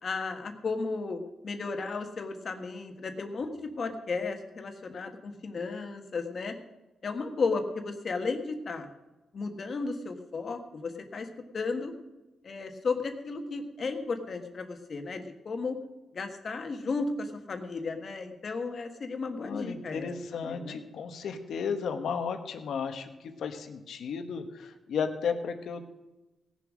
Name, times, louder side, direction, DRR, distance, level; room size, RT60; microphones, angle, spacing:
voice 1, 0.0-6.5 7.0-8.9 9.3-11.3 11.5-11.9 12.4-15.8 16.1-20.8, left 4 dB, 40° left, 6 dB, 1.4 m, -34 dB
voice 2, 19.4-26.0, left 6 dB, 70° left, 7 dB, 1.3 m, -34 dB
17.5 x 7.3 x 6.3 m, 1.1 s
wide cardioid pair, 145°, 0 cm